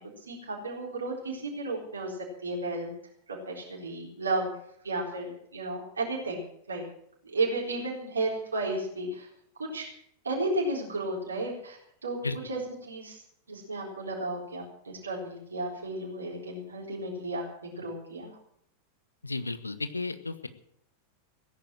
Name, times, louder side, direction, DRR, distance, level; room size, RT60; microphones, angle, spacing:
voice 1, 0.3-2.9 3.3-4.5 4.8-6.8 7.2-9.3 9.6-9.9 10.2-13.2 13.5-18.3, right 2 dB, 75° right, -3 dB, 4.0 m, -33 dB
voice 2, 19.2-20.5, left 3 dB, 80° left, 12 dB, 1.2 m, -33 dB
16.5 x 9.6 x 7.5 m, 0.70 s
figure-of-eight pair, 90°, 0 cm